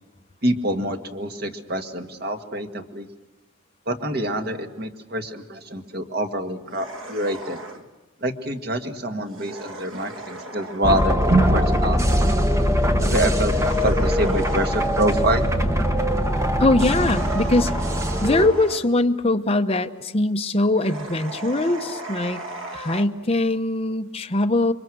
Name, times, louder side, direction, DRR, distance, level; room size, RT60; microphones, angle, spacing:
voice 1, 0.4-3.1 3.9-7.6 8.2-12.0 13.0-13.5 13.8-15.5, right 1 dB, 45° right, 5 dB, 1.8 m, -25 dB
sound 1, 6.6-7.9 9.2-10.9 13.4-15.0 16.8-18.9 20.8-23.0, right 2 dB, 60° right, 2.1 m, -36 dB
sound 2, 10.8-18.5, equal, 15° right, 1.3 m, -22 dB
voice 2, 16.6-17.7 18.2-22.4 22.7-24.7, left 2 dB, 25° left, 6 dB, 1.0 m, -21 dB
28.5 x 24.0 x 6.2 m, 1.1 s
head